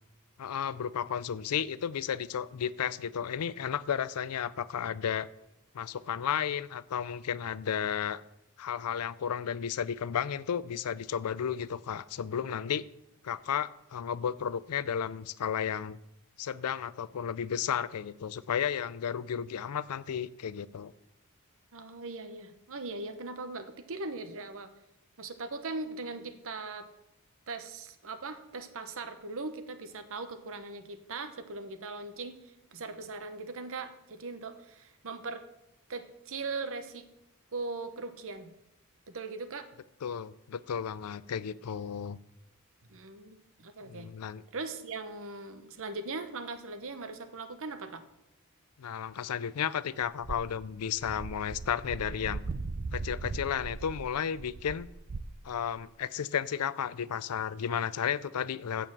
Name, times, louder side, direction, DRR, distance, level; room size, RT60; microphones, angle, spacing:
voice 1, 0.4-5.3 5.7-8.2 8.6-12.9 13.2-16.0 16.4-20.9 40.0-42.2 43.8-44.4 48.8-52.4 52.9-54.9 55.4-58.9, left 8 dB, 85° left, 0.4 m, -33 dB
voice 2, 21.7-24.7 25.2-26.9 27.5-35.4 35.9-37.1 37.5-38.5 39.1-39.7 42.9-44.1 44.5-48.0, right 3 dB, 65° right, 1.0 m, -40 dB
sound 1, 50.2-55.8, right 3 dB, 40° right, 0.4 m, -39 dB
8.4 x 6.9 x 7.4 m
head